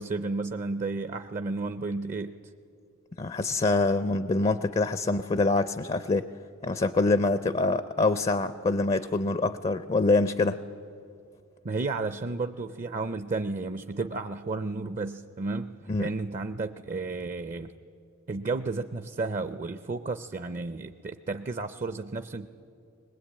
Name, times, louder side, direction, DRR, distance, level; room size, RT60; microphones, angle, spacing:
voice 1, 0.0-2.4 11.6-15.7 16.0-17.7 18.3-22.5, right 3 dB, 35° right, 11 dB, 0.5 m, -32 dB
voice 2, 3.2-6.3 6.6-10.6 15.9-16.1, left 3 dB, 30° left, 13 dB, 0.4 m, -25 dB
22.0 x 19.5 x 8.7 m, 2.5 s
head